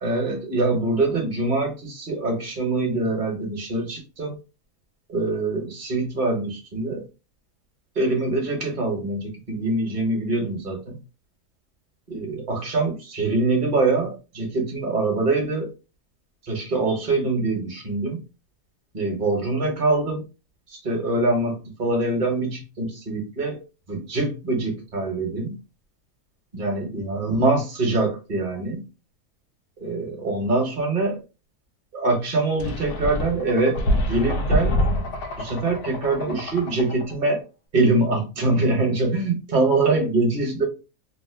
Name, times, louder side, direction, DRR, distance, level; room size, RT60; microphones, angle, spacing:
voice 1, 0.0-4.3 5.1-7.0 7.9-11.0 12.1-15.7 16.4-18.2 18.9-20.2 20.7-23.6 23.9-25.6 26.5-28.8 29.8-31.2 31.9-34.8 35.4-37.4 37.7-40.6, right 2 dB, 35° right, 0 dB, 1.1 m, -24 dB
sound 1, 32.6-37.1, left 1 dB, 85° left, 1.1 m, -26 dB
3.0 x 2.0 x 3.3 m, 0.30 s
omnidirectional pair, 1.6 m